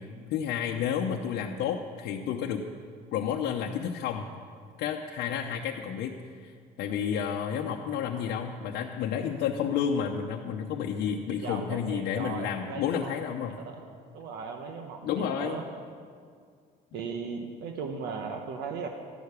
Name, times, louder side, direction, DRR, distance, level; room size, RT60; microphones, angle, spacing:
voice 1, 0.3-2.6 3.1-4.3 4.8-13.6 15.0-15.6, left 8 dB, 80° left, 1 dB, 0.8 m, -31 dB
voice 2, 11.2-13.1 13.7-13.8 14.1-15.6 16.9-18.9, right 5 dB, 85° right, 4 dB, 1.1 m, -37 dB
12.5 x 6.7 x 9.7 m, 2.1 s
cardioid pair, 110°, 17 cm